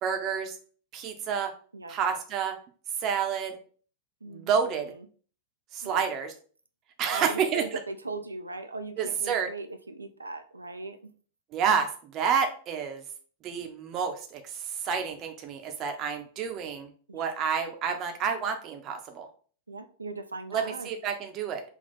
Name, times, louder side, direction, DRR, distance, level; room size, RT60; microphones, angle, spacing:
voice 1, 0.0-0.6 0.9-1.5 1.9-2.6 3.0-3.6 4.3-4.9 5.7-6.3 7.0-7.6 9.0-9.5 11.5-13.0 13.4-19.3 20.5-21.6, right 6 dB, 35° right, 5 dB, 0.8 m, -29 dB
voice 2, 4.2-5.1 5.8-6.1 7.1-11.1 17.1-17.3 19.7-20.9, right 3 dB, 85° right, 8 dB, 0.5 m, -39 dB
3.6 x 2.3 x 4.2 m, 0.42 s
figure-of-eight pair, 90°, 0 cm